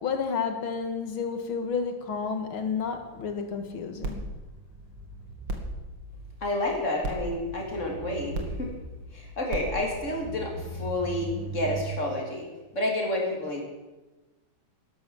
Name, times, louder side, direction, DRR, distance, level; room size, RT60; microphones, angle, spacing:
voice 1, 0.0-4.2, left 5 dB, 85° left, 6 dB, 2.5 m, -31 dB
sound 1, 4.0-11.8, right 2 dB, 65° right, 2.6 m, -37 dB
voice 2, 6.4-8.7 9.1-12.5 12.7-13.6, left 1 dB, 35° left, 0 dB, 3.5 m, -30 dB
12.5 x 11.0 x 7.6 m, 1.1 s
omnidirectional pair, 2.2 m